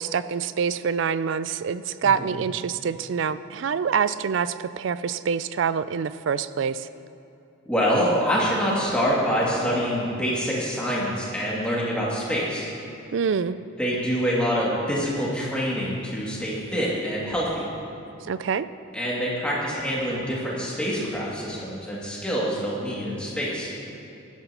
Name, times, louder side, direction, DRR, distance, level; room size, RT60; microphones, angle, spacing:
voice 1, 0.0-6.9 13.1-13.6 18.3-18.7, right 6 dB, 60° right, 14 dB, 0.3 m, -26 dB
voice 2, 7.7-12.7 13.8-17.6 18.9-23.7, equal, 5° left, -7 dB, 2.3 m, -26 dB
16.0 x 12.0 x 2.9 m, 2.8 s
head